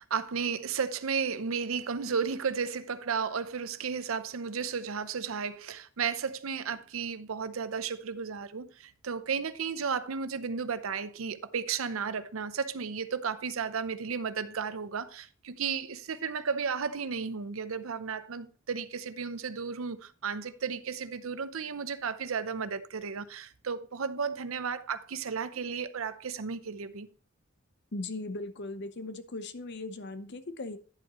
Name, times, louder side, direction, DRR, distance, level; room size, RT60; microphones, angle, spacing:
voice 1, 0.0-27.1, right 6 dB, 80° right, 0.6 m, -34 dB
voice 2, 27.9-30.8, left 2 dB, 55° left, 0.8 m, -38 dB
9.9 x 7.8 x 3.0 m
head